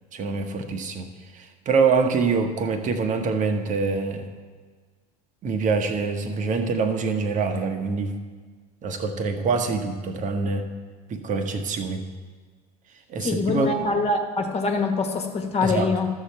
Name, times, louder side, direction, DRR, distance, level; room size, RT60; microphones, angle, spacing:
voice 1, 0.1-1.1 1.3-4.3 5.4-8.2 8.8-10.7 11.1-12.1 13.1-13.7 15.6-15.9, right 4 dB, 40° right, 6 dB, 1.2 m, -25 dB
voice 2, 13.2-16.1, left 3 dB, 30° left, 3 dB, 1.5 m, -24 dB
13.0 x 6.9 x 4.4 m, 1.5 s
hypercardioid pair, 85°, 21 cm